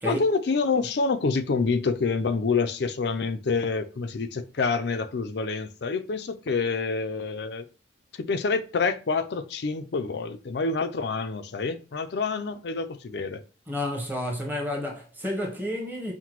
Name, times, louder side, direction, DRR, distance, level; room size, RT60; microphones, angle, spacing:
voice 1, 0.0-7.6 8.2-13.4, left 4 dB, 65° left, 0.4 m, -27 dB
voice 2, 13.7-16.1, left 1 dB, 10° right, 1.0 m, -30 dB
5.7 x 2.2 x 3.0 m
head